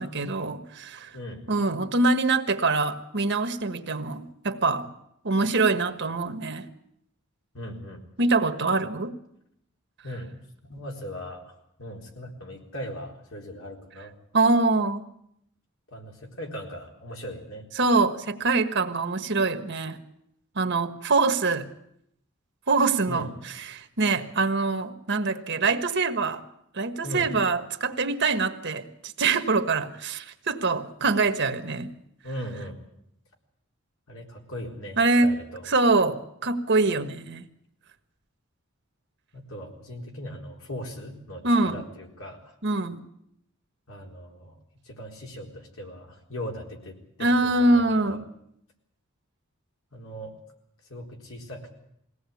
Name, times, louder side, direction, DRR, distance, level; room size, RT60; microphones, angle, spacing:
voice 1, 0.0-1.1 1.5-4.9 5.2-6.7 8.2-9.1 14.3-15.0 17.8-20.0 20.5-21.7 22.7-23.3 23.7-26.4 26.7-31.9 35.0-35.3 35.7-37.4 41.4-41.8 42.6-43.0 47.2-48.2, right 3 dB, 55° right, 8 dB, 1.4 m, -24 dB
voice 2, 1.1-1.4 7.5-8.0 10.0-10.3 10.7-14.1 15.9-17.6 23.1-23.3 27.0-27.3 32.2-32.8 34.1-35.7 39.3-42.6 43.9-44.6 44.8-48.2 49.9-50.4 50.8-51.7, equal, 75° left, 0 dB, 4.2 m, -39 dB
22.0 x 17.5 x 8.5 m, 0.76 s
head